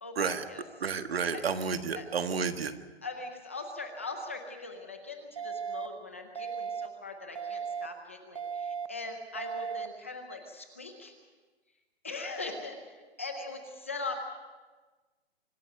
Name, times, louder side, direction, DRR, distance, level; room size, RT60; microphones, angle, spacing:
voice 1, 0.0-0.6 1.3-1.5 1.9-2.1 3.0-11.1 12.0-14.1, left 3 dB, 15° left, 4 dB, 0.6 m, -41 dB
voice 2, 0.8-2.7, right 6 dB, 65° right, 9 dB, 1.6 m, -31 dB
sound 1, 5.4-5.9 6.4-6.9 7.4-7.9 8.4-8.9 9.4-9.9, right 7 dB, 30° right, 0.7 m, -36 dB
25.5 x 12.5 x 9.0 m, 1.3 s
hypercardioid pair, 180°, 32 cm